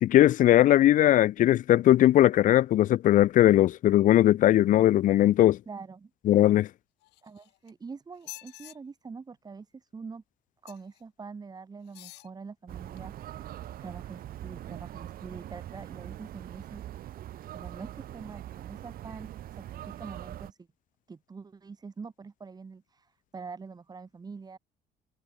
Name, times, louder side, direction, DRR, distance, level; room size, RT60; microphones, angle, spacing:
voice 1, 0.0-5.6 6.3-6.7, left 13 dB, 50° left, 0.4 m, -20 dB
voice 2, 5.7-6.1 7.2-10.2 10.6-13.5 13.8-16.8 17.5-20.6 21.1-24.6, right 5 dB, 25° right, 1.1 m, -44 dB
sound 1, 7.0-7.7 8.2-8.8 10.6-11.0 11.8-12.3 13.0-13.1, left 19 dB, 85° left, 1.2 m, -47 dB
sound 2, 12.7-20.5, right 12 dB, 60° right, 1.0 m, -42 dB
cardioid pair, 110°, 17 cm